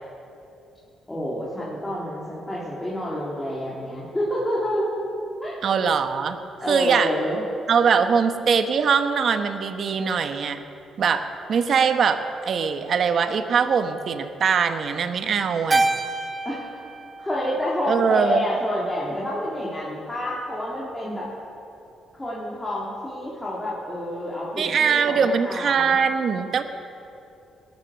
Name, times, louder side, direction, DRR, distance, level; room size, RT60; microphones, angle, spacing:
voice 1, 1.1-4.9 5.4-5.9 6.6-7.4 16.4-16.8 17.2-21.3 22.2-26.0, left 1 dB, 15° left, -7 dB, 3.4 m, -28 dB
voice 2, 5.6-6.4 6.7-7.1 7.7-10.6 11.0-15.8 17.8-18.4 24.6-26.6, right 6 dB, 55° right, 8 dB, 1.0 m, -22 dB
Keyboard (musical), 15.7-18.2, right 2 dB, 25° right, 1.1 m, -27 dB
18.5 x 11.5 x 6.7 m, 2.7 s
cardioid pair, 90°, 0 cm